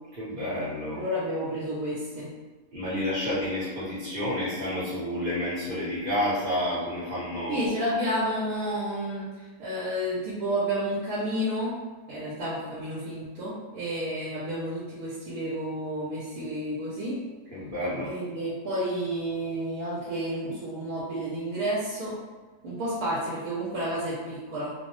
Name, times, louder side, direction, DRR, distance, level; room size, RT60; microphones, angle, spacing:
voice 1, 0.2-1.0 2.7-7.7 17.5-18.1, left 1 dB, 45° right, -9 dB, 0.9 m, -30 dB
voice 2, 0.9-2.3 7.5-11.8 12.1-17.2 18.0-22.2 22.6-24.7, equal, 75° right, -7 dB, 1.1 m, -31 dB
2.6 x 2.0 x 3.0 m, 1.3 s
omnidirectional pair, 1.6 m